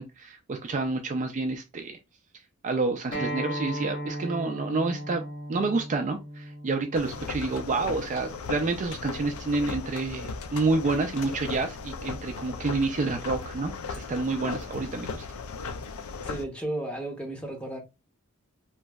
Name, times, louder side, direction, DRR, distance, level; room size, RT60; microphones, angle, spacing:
voice 1, 0.0-2.0 2.6-5.2 5.5-15.2, right 3 dB, 35° right, 0.3 m, -29 dB
Acoustic guitar, 3.1-8.3, equal, 55° left, 1.4 m, -36 dB
sound 1, 6.9-16.4, left 4 dB, 80° left, 0.4 m, -37 dB
voice 2, 16.2-17.8, right 1 dB, 5° left, 0.7 m, -33 dB
3.0 x 2.6 x 2.3 m
head